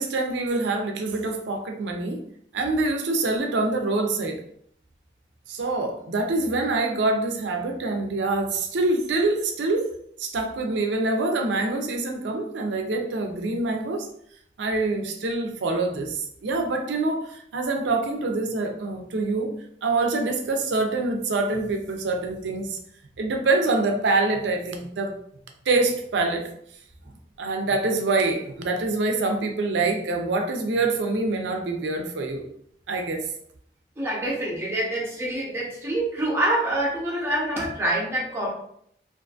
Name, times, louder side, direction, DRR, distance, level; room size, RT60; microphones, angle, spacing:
voice 1, 0.0-2.2 2.5-4.4 5.5-9.9 10.2-14.1 14.6-19.5 19.8-22.8 23.2-25.1 25.7-26.5 27.4-32.4 32.9-33.3, right 3 dB, 90° right, 4 dB, 0.5 m, -25 dB
voice 2, 34.0-38.5, right 1 dB, 15° right, -5 dB, 0.7 m, -26 dB
2.5 x 2.5 x 2.3 m, 0.67 s
head